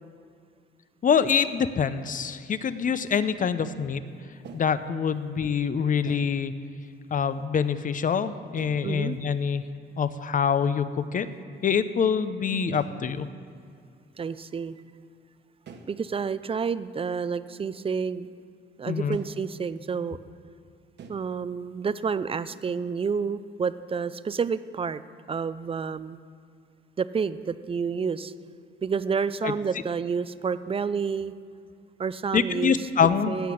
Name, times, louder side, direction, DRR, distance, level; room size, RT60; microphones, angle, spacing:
voice 1, 1.0-4.0 4.5-6.5 7.1-9.6 10.0-11.3 11.6-13.3 18.9-19.2 29.4-29.5 32.3-33.4, left 7 dB, 40° left, 13 dB, 0.7 m, -25 dB
sound 1, 1.9-2.0 2.3-2.6 4.4-4.9 6.1-6.4 8.6-8.9 10.0-10.2 10.5-10.9 11.2-11.4 11.7-12.1 12.7-13.1 15.7-16.1 16.4-16.5 17.2-17.3 19.1-19.4 21.0-21.1, right 4 dB, 60° right, 1.4 m, -47 dB
voice 2, 8.8-9.2 14.2-14.8 15.9-18.3 18.8-20.2 21.1-25.0 25.3-26.2 27.0-28.3 28.8-31.3 32.0-32.8 33.3-33.5, right 6 dB, 30° right, 14 dB, 0.5 m, -29 dB
16.0 x 5.9 x 8.5 m, 2.3 s
cardioid pair, 90°, 20 cm